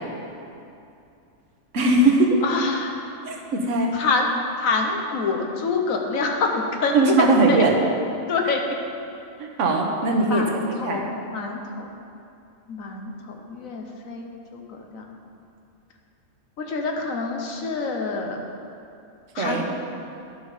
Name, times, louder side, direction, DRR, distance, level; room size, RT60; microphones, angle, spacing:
voice 1, 1.7-2.4 3.3-3.9 6.9-7.8 9.4-10.5 10.8-11.0 19.4-19.7, right 2 dB, 65° right, 0 dB, 1.3 m, -20 dB
voice 2, 2.4-3.0 3.9-4.3 4.6-7.6 8.3-8.8 10.2-11.9 12.7-15.0 16.6-18.4 19.3-19.7, left 4 dB, 75° left, 2 dB, 1.3 m, -26 dB
12.0 x 5.4 x 4.9 m, 2.6 s
omnidirectional pair, 1.4 m